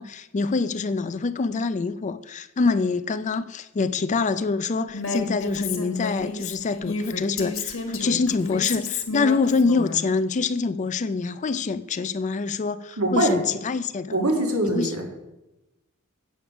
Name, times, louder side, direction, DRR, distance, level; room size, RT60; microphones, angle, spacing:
voice 1, 0.0-14.2 14.6-14.9, left 4 dB, 35° left, 0.4 m, -25 dB
Female speech woman speaking, 4.9-10.0, left 4 dB, 65° left, 1.5 m, -31 dB
voice 2, 13.0-13.4 14.1-15.0, right 1 dB, 85° right, 2.2 m, -23 dB
8.6 x 7.0 x 6.0 m
head